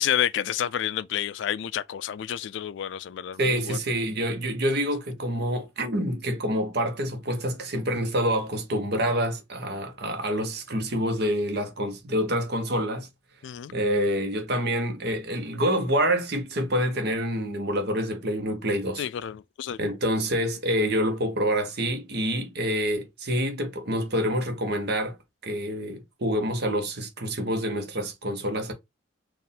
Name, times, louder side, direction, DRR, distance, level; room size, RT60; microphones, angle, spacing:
voice 1, 0.0-3.8 13.4-13.7 19.0-19.8, left 10 dB, 65° left, 0.3 m, -29 dB
voice 2, 3.4-13.1 13.7-19.1 19.8-25.1 25.4-28.7, equal, 55° right, 1.0 m, -27 dB
4.4 x 2.5 x 3.5 m
head